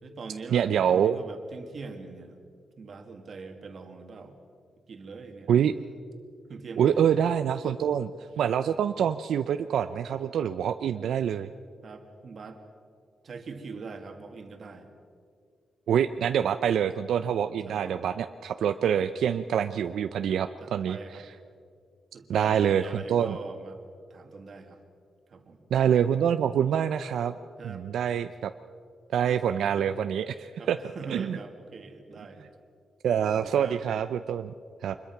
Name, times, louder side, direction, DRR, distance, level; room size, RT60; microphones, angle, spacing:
voice 1, 0.0-2.4 2.8-4.3 4.9-5.5 6.5-7.2 7.7-7.9 8.7-8.8 11.8-12.6 13.2-14.9 17.7-17.9 20.6-21.2 22.1-23.8 24.1-24.8 25.3-25.6 27.6-27.9 30.6-32.5 33.3-33.8, right 4 dB, 45° right, 5 dB, 2.2 m, -42 dB
voice 2, 0.5-1.2 5.5-5.7 6.8-8.1 8.4-11.5 15.9-21.2 22.3-23.4 25.7-27.3 27.6-28.5 29.1-30.8 31.1-31.4 33.0-34.5 34.8-35.0, right 9 dB, 85° right, 10 dB, 0.6 m, -26 dB
25.0 x 21.5 x 6.0 m, 2.2 s
wide cardioid pair, 160°, 0 cm